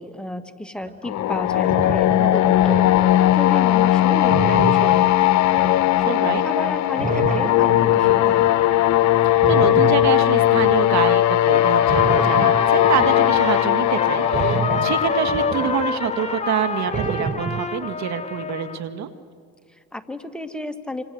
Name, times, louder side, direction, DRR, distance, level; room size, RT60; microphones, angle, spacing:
voice 1, 0.0-5.4 6.0-8.5 19.7-21.0, left 1 dB, 5° left, 7 dB, 1.9 m, -32 dB
sound 1, 0.9-1.0 1.4-3.4 3.8-6.5 6.8-8.6 9.2-11.1 11.7-16.4 16.7-17.6, right 6 dB, 25° right, 1.0 m, -30 dB
sound 2, 1.0-16.9, left 13 dB, 65° left, 1.0 m, -18 dB
voice 2, 6.1-6.4 9.2-19.1, right 9 dB, 65° right, 10 dB, 1.8 m, -26 dB
Trumpet, 11.5-18.8, left 4 dB, 20° left, 2.1 m, -28 dB
28.0 x 26.5 x 7.9 m, 2.1 s
supercardioid pair, 80°, 31 cm